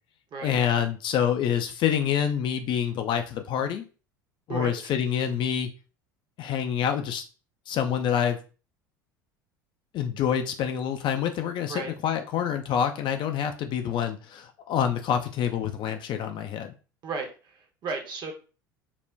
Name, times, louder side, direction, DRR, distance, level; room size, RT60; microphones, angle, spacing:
voice 1, 0.4-3.8 4.5-5.7 6.4-7.2 7.7-8.4 9.9-16.7, left 8 dB, 45° left, 6 dB, 0.4 m, -27 dB
voice 2, 4.5-4.9 11.7-11.9 17.0-18.3, right 4 dB, 40° right, 4 dB, 0.7 m, -35 dB
2.4 x 2.1 x 3.2 m, 0.35 s
figure-of-eight pair, 70°, 11 cm